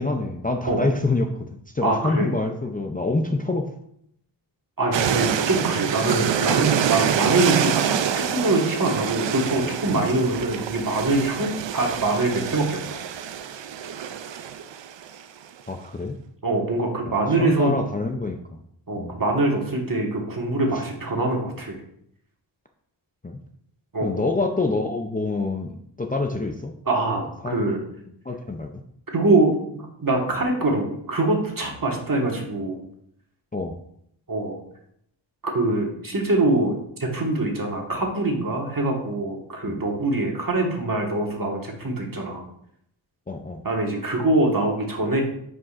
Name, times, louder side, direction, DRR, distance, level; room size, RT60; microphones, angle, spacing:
voice 1, 0.0-1.5 1.7-3.7 9.9-10.0 15.7-16.2 17.4-18.4 19.0-19.1 20.7-20.8 23.2-23.4 24.0-26.7 27.4-27.6 28.3-28.7 33.5-33.8 39.6-39.8 43.3-43.6, left 3 dB, 20° left, 3 dB, 0.5 m, -26 dB
voice 2, 1.8-2.3 4.8-13.0 16.4-17.7 18.9-21.8 23.9-24.2 26.8-27.8 29.1-32.8 34.3-34.6 35.5-42.4 43.6-45.2, right 2 dB, 45° right, 0 dB, 1.6 m, -24 dB
sound 1, 4.9-15.2, right 8 dB, 70° right, 0.5 m, -26 dB
9.4 x 5.2 x 2.5 m, 0.72 s
wide cardioid pair, 90°, 47 cm